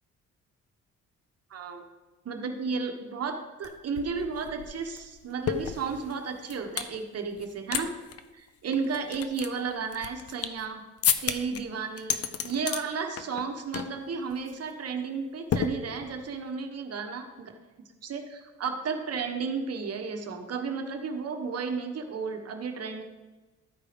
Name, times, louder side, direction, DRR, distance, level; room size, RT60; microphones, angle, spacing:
voice 1, 1.5-1.8 2.2-7.9 8.3-10.8 11.2-12.2 12.4-17.5 18.0-23.0, right 5 dB, 55° right, 5 dB, 1.3 m, -33 dB
Beer Opening, 3.6-3.7 4.0-6.9 7.4-7.8 8.1-8.2 8.7-10.6 11.0-11.6 12.0-12.8 13.2-13.5 13.7-14.0 14.3-14.5 15.5-16.3, left 8 dB, 50° left, 0.7 m, -31 dB
12.0 x 4.7 x 5.1 m, 1.2 s
cardioid pair, 90°, 30 cm